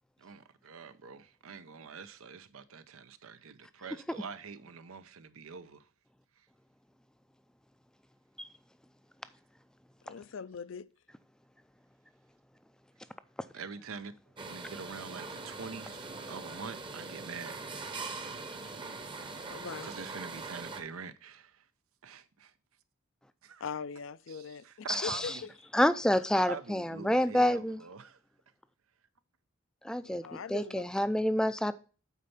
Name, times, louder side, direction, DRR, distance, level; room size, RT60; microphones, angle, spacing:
voice 1, 0.2-5.9 6.4-6.5 13.5-14.1 14.5-17.8 19.8-21.7 22.0-22.5 23.4-23.6 24.3-25.5 26.4-28.2, right 5 dB, 90° right, 0.7 m, -45 dB
voice 2, 10.0-10.9 19.5-19.9 23.6-25.5 30.0-30.8, left 6 dB, 65° left, 0.4 m, -41 dB
sound 1, 14.4-20.8, right 3 dB, 25° right, 0.8 m, -42 dB
voice 3, 24.9-25.3 25.7-27.8 29.8-30.2 30.5-31.7, left 1 dB, 5° left, 0.4 m, -28 dB
8.3 x 4.5 x 5.6 m
head